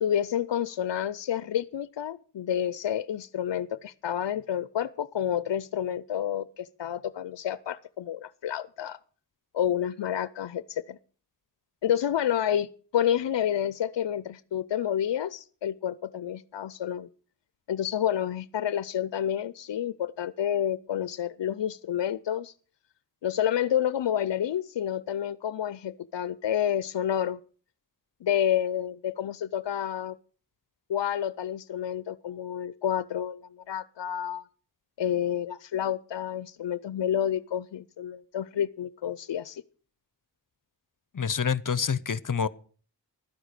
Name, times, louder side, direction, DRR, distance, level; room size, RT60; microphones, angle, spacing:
voice 1, 0.0-9.0 9.5-11.0 11.8-17.1 17.7-22.5 23.2-27.4 28.2-30.2 30.9-34.4 35.0-39.6, left 10 dB, 75° left, 0.5 m, -29 dB
voice 2, 41.1-42.5, left 6 dB, 45° left, 0.8 m, -27 dB
12.5 x 10.0 x 6.6 m
cardioid pair, 40°, 43 cm